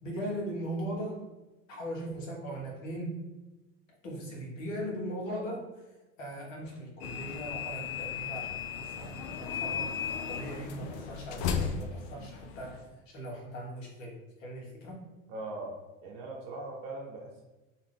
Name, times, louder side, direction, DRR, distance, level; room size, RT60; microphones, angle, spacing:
voice 1, 0.0-1.2 1.7-3.2 4.0-5.7 6.2-9.9 10.3-12.8 13.1-14.1 14.4-15.0, right 1 dB, 75° left, -2 dB, 1.2 m, -39 dB
sound 1, 7.0-12.9, left 7 dB, 60° left, 0.5 m, -36 dB
voice 2, 15.3-15.7 16.0-17.4, right 2 dB, 60° right, -2 dB, 0.9 m, -40 dB
2.8 x 2.4 x 3.4 m, 1.1 s
hypercardioid pair, 90°, 39 cm